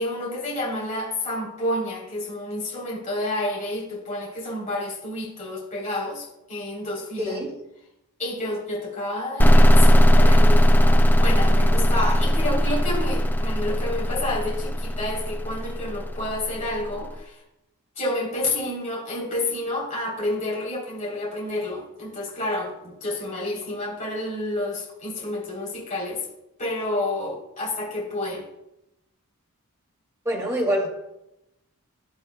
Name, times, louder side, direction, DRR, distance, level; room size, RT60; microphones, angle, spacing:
voice 1, 0.0-7.3 8.2-17.4 18.0-26.3 26.6-28.4, left 1 dB, 35° left, -4 dB, 3.6 m, -29 dB
voice 2, 7.2-7.5 30.2-30.9, equal, 15° right, -3 dB, 2.5 m, -25 dB
sound 1, 9.4-16.9, equal, 10° left, 0.3 m, -18 dB
12.0 x 8.4 x 2.3 m, 0.88 s
head